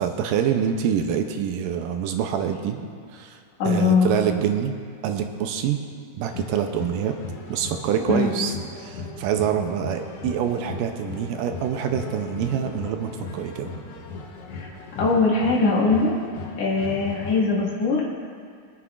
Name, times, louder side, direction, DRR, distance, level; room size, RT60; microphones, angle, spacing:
voice 1, 0.0-2.8 3.1-3.4 3.6-4.7 5.0-5.8 6.2-7.2 7.5-8.5 8.8-13.7, right 8 dB, 80° right, 6 dB, 2.1 m, -25 dB
voice 2, 3.6-4.1 8.1-8.4 14.5-16.1 16.6-18.0, left 4 dB, 50° left, -4 dB, 2.4 m, -21 dB
sound 1, 6.3-17.4, left 4 dB, 85° left, 1.4 m, -37 dB
22.5 x 9.8 x 2.4 m, 2.1 s
omnidirectional pair, 4.2 m